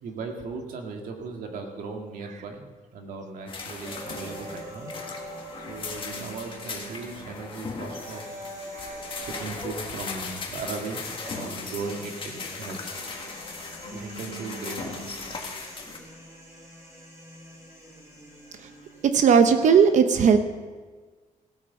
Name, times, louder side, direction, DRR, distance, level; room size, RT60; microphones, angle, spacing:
voice 1, 0.0-4.9 5.7-8.4 9.1-12.8 13.9-15.4, right 4 dB, 90° right, 3 dB, 1.9 m, -37 dB
sound 1, 3.5-16.0, left 4 dB, 40° left, 1.6 m, -38 dB
sound 2, 3.8-19.8, right 1 dB, 20° right, 3.3 m, -44 dB
voice 2, 19.1-20.4, right 6 dB, 60° right, 9 dB, 0.8 m, -17 dB
16.0 x 8.5 x 5.6 m, 1.4 s
wide cardioid pair, 165°, 14 cm